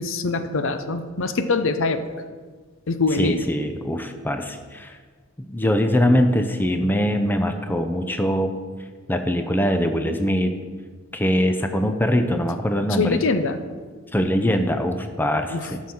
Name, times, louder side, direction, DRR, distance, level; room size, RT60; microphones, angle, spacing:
voice 1, 0.0-2.0 2.9-3.4 12.9-13.6 15.5-15.7, left 3 dB, 60° left, 9 dB, 0.6 m, -23 dB
voice 2, 3.2-5.0 5.4-8.5 9.1-10.5 11.1-13.2 14.1-15.8, equal, 10° left, 7 dB, 0.5 m, -22 dB
13.0 x 6.3 x 4.3 m, 1.5 s
head